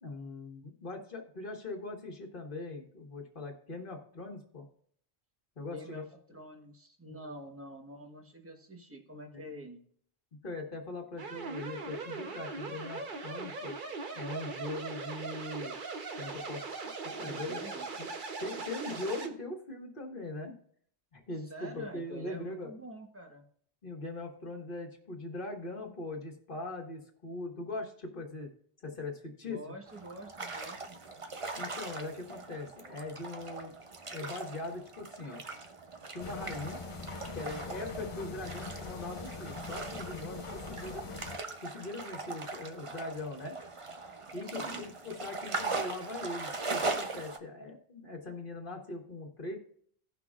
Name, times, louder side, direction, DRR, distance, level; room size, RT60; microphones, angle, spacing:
voice 1, 0.0-4.7 5.6-6.0 7.1-7.3 9.3-9.4 10.4-13.8 14.2-15.7 16.2-16.6 17.0-18.1 18.4-20.6 21.1-22.7 23.8-28.5 28.8-29.6 31.6-33.7 34.1-35.4 36.1-36.8 37.3-41.0 41.6-43.6 44.3-49.6, left 2 dB, 55° left, 0 dB, 1.7 m, -41 dB
voice 2, 5.6-9.8 17.2-17.9 21.5-23.4 29.4-31.0 44.4-44.9, right 1 dB, 15° right, 3 dB, 1.1 m, -47 dB
sound 1, 11.2-19.3, right 4 dB, 55° right, 1.0 m, -40 dB
sound 2, 29.9-47.4, right 3 dB, 35° right, 0.7 m, -40 dB
sound 3, 36.2-41.4, left 4 dB, 35° left, 0.6 m, -43 dB
17.5 x 5.9 x 2.4 m, 0.62 s
omnidirectional pair, 1.1 m